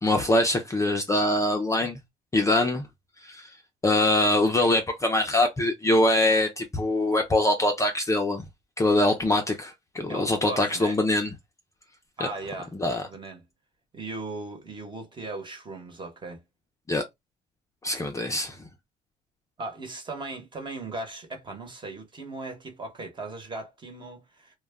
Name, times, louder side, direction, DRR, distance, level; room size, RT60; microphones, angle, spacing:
voice 1, 0.0-2.0 2.3-2.9 3.2-3.5 3.8-8.4 8.8-11.3 12.8-13.0 16.9-17.0 17.8-18.6, left 1 dB, 20° left, 0.5 m, -23 dB
voice 2, 10.1-11.0 12.2-12.7 13.1-13.4 13.9-16.4 19.6-24.6, right 3 dB, 30° right, 1.1 m, -38 dB
2.2 x 2.2 x 3.5 m
cardioid pair, 110°, 17 cm